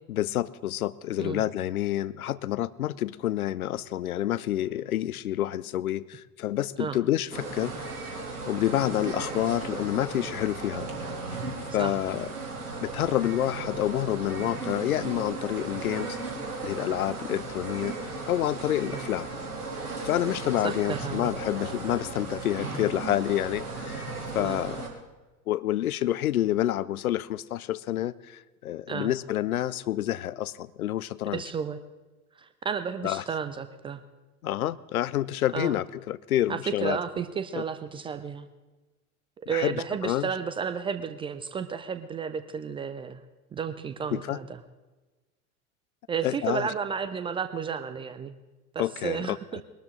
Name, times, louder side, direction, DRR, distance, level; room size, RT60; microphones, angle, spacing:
voice 1, 0.1-7.7 8.4-10.9 11.7-12.3 12.8-16.2 16.6-17.9 18.3-19.3 20.0-24.1 24.3-24.8 25.5-31.4 33.0-33.2 34.4-37.0 37.6-37.7 39.5-39.8 40.0-40.3 44.1-44.4 46.2-46.7 48.8-49.6, left 13 dB, 70° left, 19 dB, 0.6 m, -28 dB
sound 1, 7.3-24.9, right 3 dB, 80° right, 3.0 m, -36 dB
voice 2, 20.6-21.3 24.4-24.6 28.9-29.1 31.3-31.8 32.4-34.0 35.5-35.8 36.5-38.5 39.5-43.2 43.5-44.5 46.1-48.3 48.7-49.4, right 6 dB, 15° right, 11 dB, 0.4 m, -32 dB
21.5 x 12.5 x 3.8 m, 1.2 s
figure-of-eight pair, 85°, 44 cm